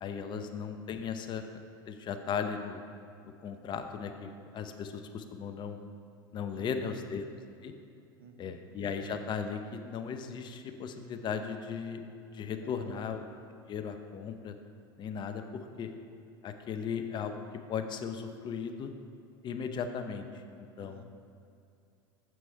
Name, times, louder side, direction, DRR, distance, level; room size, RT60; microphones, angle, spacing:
voice 1, 0.0-1.4 1.9-2.8 3.4-5.8 6.3-7.2 7.6-7.7 8.4-12.1 12.3-13.2 13.7-14.5 15.0-15.9 16.4-17.4 17.7-18.9 19.4-20.3 20.8-21.0, left 6 dB, 40° left, 7 dB, 0.7 m, -37 dB
voice 2, 6.5-7.0 8.2-8.6 12.6-13.1 15.3-15.8 20.8-21.0, right 5 dB, 80° right, 6 dB, 0.7 m, -52 dB
7.7 x 6.2 x 4.6 m, 2.6 s
hypercardioid pair, 85°, 12 cm